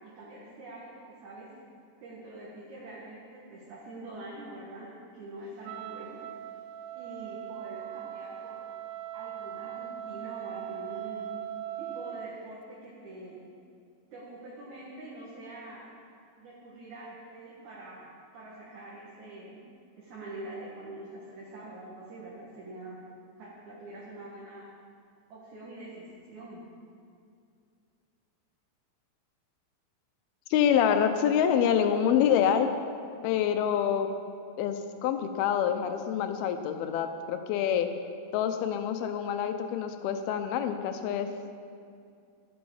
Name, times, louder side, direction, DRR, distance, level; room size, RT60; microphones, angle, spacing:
voice 1, 0.0-1.5 2.0-6.2 7.0-8.7 9.1-11.3 11.8-13.4 14.1-15.9 16.4-18.1 18.3-19.6 20.0-23.0 23.4-24.7 25.3-26.6, right 2 dB, 60° right, -6 dB, 2.8 m, -45 dB
Wind instrument woodwind instrument, 5.6-12.4, right 11 dB, 80° right, 2.3 m, -40 dB
voice 2, 30.5-32.7 33.2-34.1 34.6-37.9 38.3-41.3, left 8 dB, 90° left, 7 dB, 2.7 m, -26 dB
12.0 x 8.7 x 7.1 m, 2.4 s
omnidirectional pair, 4.3 m